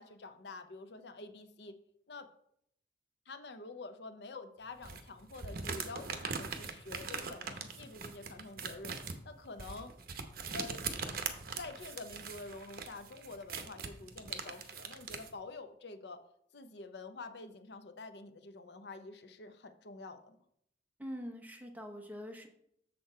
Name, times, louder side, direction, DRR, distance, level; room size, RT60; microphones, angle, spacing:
voice 1, 0.0-1.8 2.1-2.3 3.3-8.9 9.2-9.9 10.5-10.8 11.5-16.2 16.5-20.4, left 3 dB, 70° left, 10 dB, 0.6 m, -47 dB
sound 1, 4.8-15.3, right 5 dB, 55° right, 0.8 m, -41 dB
voice 2, 21.0-22.5, equal, 10° right, 3 dB, 0.9 m, -44 dB
6.8 x 6.5 x 4.4 m, 0.72 s
head